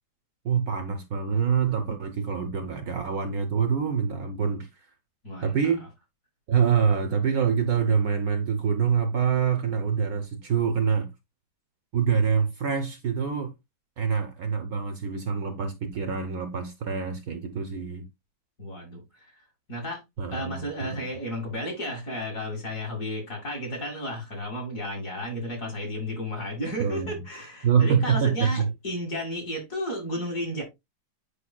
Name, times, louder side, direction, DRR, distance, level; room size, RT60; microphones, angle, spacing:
voice 1, 0.4-4.9 5.4-5.8 6.5-11.1 11.9-13.5 14.0-18.0 20.2-21.0 26.8-27.2 27.6-28.7, right 6 dB, 65° right, 1.0 m, -25 dB
voice 2, 5.2-5.6 18.6-19.3 19.7-20.0 20.3-30.6, equal, 45° left, 2.5 m, -33 dB
8.3 x 5.0 x 2.3 m
omnidirectional pair, 2.0 m